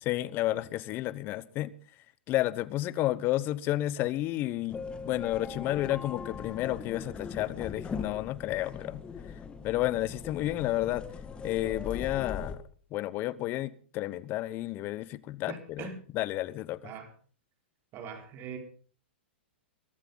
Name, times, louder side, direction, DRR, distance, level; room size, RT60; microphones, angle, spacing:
voice 1, 0.0-1.7 2.3-9.0 9.3-11.1 11.4-12.6 12.9-15.9 16.1-16.9, left 15 dB, 35° left, 1.0 m, -31 dB
sound 1, 4.7-12.6, left 5 dB, 15° left, 1.9 m, -40 dB
voice 2, 15.5-16.0 16.8-17.1 17.9-18.6, right 6 dB, 35° right, 4.6 m, -41 dB
22.5 x 13.0 x 4.0 m
hypercardioid pair, 125°, 6 cm